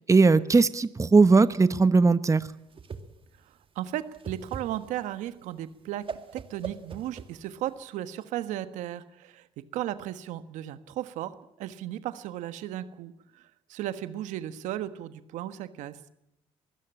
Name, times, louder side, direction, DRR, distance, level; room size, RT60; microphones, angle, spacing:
voice 1, 0.1-2.4, right 4 dB, 25° right, 14 dB, 1.0 m, -19 dB
Whoosh swoosh swish, 2.4-7.8, right 5 dB, 45° right, 2.3 m, -42 dB
voice 2, 3.7-6.1 6.3-9.5 9.7-11.3 11.6-13.4 13.7-16.0, right 12 dB, 80° right, 12 dB, 1.4 m, -35 dB
23.5 x 16.5 x 8.9 m, 0.85 s
supercardioid pair, 60°, 13 cm